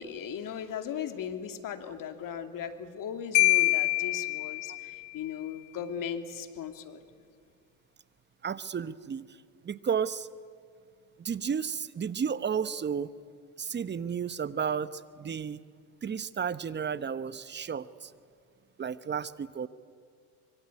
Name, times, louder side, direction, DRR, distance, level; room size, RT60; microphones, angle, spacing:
voice 1, 0.0-7.0, left 8 dB, 45° left, 8 dB, 2.8 m, -37 dB
Marimba xylophone, 3.3-5.1, left 26 dB, 60° left, 0.7 m, -25 dB
voice 2, 8.4-9.3 9.6-10.3 11.2-13.1 13.6-15.6 16.0-18.1 18.8-19.7, right 7 dB, 25° right, 16 dB, 1.0 m, -32 dB
25.0 x 23.5 x 9.7 m, 2.1 s
hypercardioid pair, 90°, 46 cm